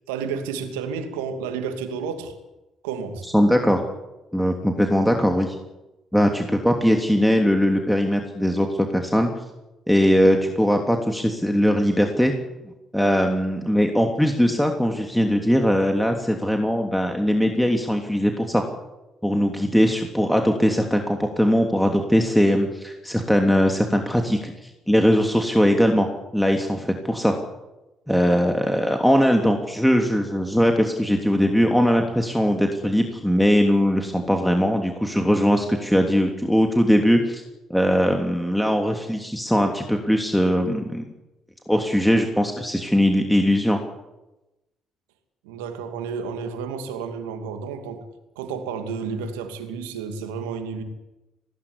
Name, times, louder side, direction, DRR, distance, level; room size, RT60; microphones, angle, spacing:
voice 1, 0.1-2.3 2.8-3.3 45.4-48.0 48.4-50.8, right 6 dB, 85° right, 7 dB, 2.6 m, -31 dB
voice 2, 3.2-3.8 4.3-5.5 6.1-9.3 9.9-12.3 12.9-18.6 19.2-26.1 26.3-27.4 28.1-37.4 37.7-41.1 41.7-43.8, equal, ahead, 3 dB, 3.1 m, -20 dB
19.5 x 18.0 x 10.0 m, 1.0 s
hypercardioid pair, 50°, 0 cm